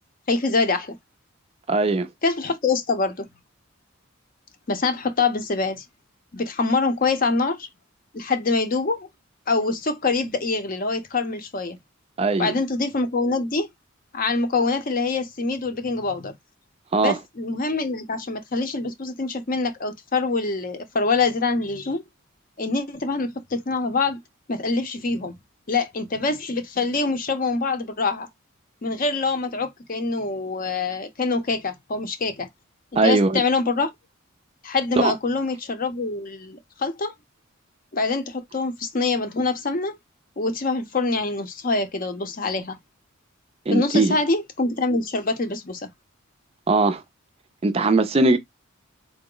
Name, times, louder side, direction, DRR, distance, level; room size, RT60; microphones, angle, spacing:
voice 1, 0.3-1.0 2.2-3.3 4.7-5.8 6.3-7.7 8.1-9.1 9.5-11.8 12.4-13.7 14.1-16.3 17.0-22.0 22.6-24.2 24.5-25.4 25.7-28.3 28.8-32.5 32.9-33.9 34.6-37.1 37.9-40.0 40.4-42.8 43.7-45.9, left 3 dB, 40° left, 0.6 m, -25 dB
voice 2, 1.7-2.1 12.2-12.5 16.9-17.2 33.0-33.4 35.0-35.1 43.7-44.2 46.7-47.0 47.6-48.4, right 3 dB, 30° right, 0.4 m, -20 dB
3.8 x 2.0 x 3.8 m
head